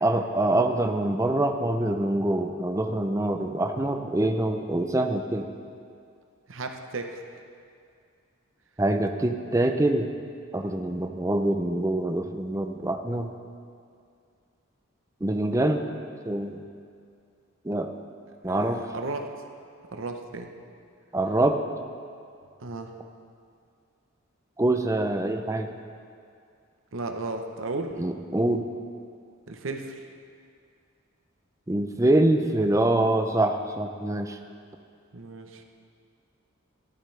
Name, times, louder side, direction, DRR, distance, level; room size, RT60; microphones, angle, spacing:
voice 1, 0.0-5.5 8.8-10.1 10.5-13.3 15.2-15.9 16.3-16.6 17.6-17.9 18.4-18.8 21.1-21.6 24.6-25.7 28.0-28.7 31.7-34.4, right 1 dB, 15° right, 5 dB, 0.5 m, -25 dB
voice 2, 6.5-7.2 18.4-19.3 19.9-20.5 22.6-22.9 26.9-28.0 29.5-30.1 35.1-35.6, right 3 dB, 70° right, 5 dB, 0.8 m, -34 dB
15.0 x 11.0 x 3.3 m, 2.3 s
head